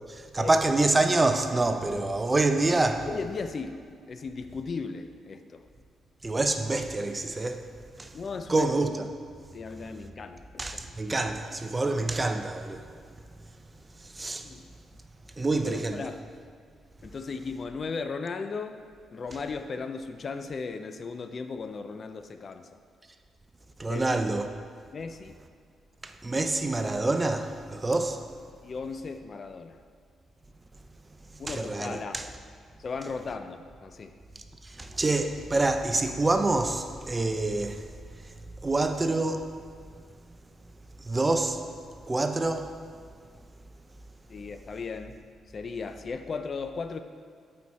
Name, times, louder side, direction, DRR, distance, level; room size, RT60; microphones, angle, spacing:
voice 1, 0.1-3.1 6.2-7.7 8.0-8.1 8.5-9.1 10.6-12.9 14.0-14.5 15.4-16.0 23.8-24.5 26.0-28.2 31.3-32.3 34.6-37.8 38.6-39.5 41.0-41.6 42.0-42.7, right 2 dB, 20° right, 7 dB, 0.5 m, -26 dB
voice 2, 3.0-3.8 4.1-5.6 8.1-8.7 9.5-10.9 14.4-14.7 15.6-16.2 17.0-18.8 19.1-22.8 23.9-24.2 24.9-25.4 28.6-29.8 31.4-32.3 32.8-34.1 44.3-45.2 45.5-47.0, left 4 dB, 45° left, 8 dB, 0.4 m, -36 dB
8.1 x 4.4 x 4.2 m, 2.1 s
cardioid pair, 85°, 0 cm